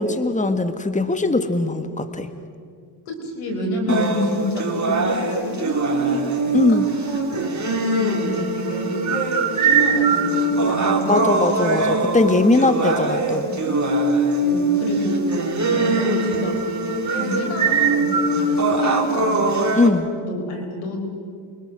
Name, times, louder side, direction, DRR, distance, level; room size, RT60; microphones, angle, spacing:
voice 1, 0.0-2.3 3.9-4.0 6.5-6.9 11.1-13.5 19.7-20.1, left 2 dB, 15° left, 9 dB, 1.5 m, -20 dB
voice 2, 3.1-6.2 6.4-9.0 9.5-11.2 14.4-15.2 15.7-16.6 17.1-19.5 20.2-21.0, left 1 dB, 85° left, 3 dB, 4.7 m, -30 dB
sound 1, 3.9-19.9, right 3 dB, 35° right, 3.8 m, -21 dB
28.5 x 23.0 x 6.1 m, 2.2 s
supercardioid pair, 55°, 50 cm